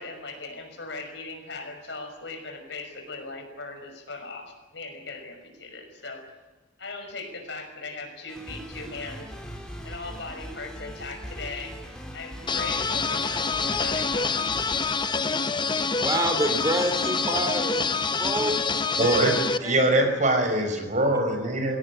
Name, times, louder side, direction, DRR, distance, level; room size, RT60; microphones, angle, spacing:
voice 1, 0.0-6.3 6.8-9.3 9.8-11.8 12.1-14.3, left 3 dB, 65° left, 5 dB, 5.9 m, -39 dB
sound 1, 8.3-14.8, equal, 5° left, 3.9 m, -40 dB
sound 2, 12.5-19.6, left 4 dB, 25° left, 0.8 m, -26 dB
voice 2, 16.0-19.3 19.6-20.1, right 1 dB, 20° right, 6 dB, 2.9 m, -28 dB
voice 3, 18.9-21.8, right 1 dB, 40° right, 5 dB, 5.6 m, -23 dB
23.0 x 17.0 x 9.8 m, 1.1 s
head